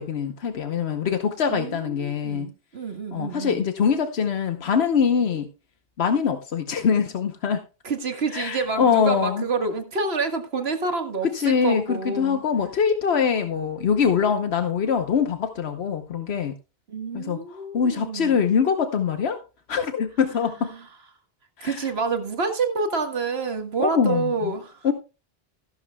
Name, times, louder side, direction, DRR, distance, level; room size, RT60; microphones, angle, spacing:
voice 1, 0.0-2.5 3.1-5.5 6.0-7.6 8.3-9.4 11.3-16.5 17.1-17.4 17.7-19.4 19.7-20.7 21.6-21.7 23.8-24.2 24.8-24.9, left 6 dB, 85° left, 1.2 m, -23 dB
voice 2, 1.5-3.7 7.8-12.4 16.9-18.4 20.3-20.9 21.6-24.9, right 4 dB, 80° right, 1.8 m, -28 dB
14.0 x 12.0 x 2.3 m
omnidirectional pair, 1.0 m